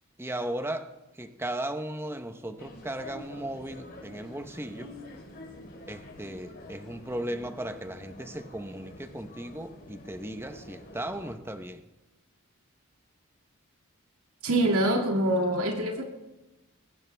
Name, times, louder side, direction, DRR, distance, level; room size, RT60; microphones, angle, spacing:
voice 1, 0.2-5.0 5.9-11.8, right 1 dB, 10° right, 8 dB, 0.9 m, -36 dB
sound 1, 2.6-11.4, left 1 dB, 45° left, 2.9 m, -47 dB
voice 2, 14.4-16.0, right 1 dB, 80° right, 1 dB, 2.2 m, -25 dB
21.0 x 17.5 x 3.4 m, 1.0 s
head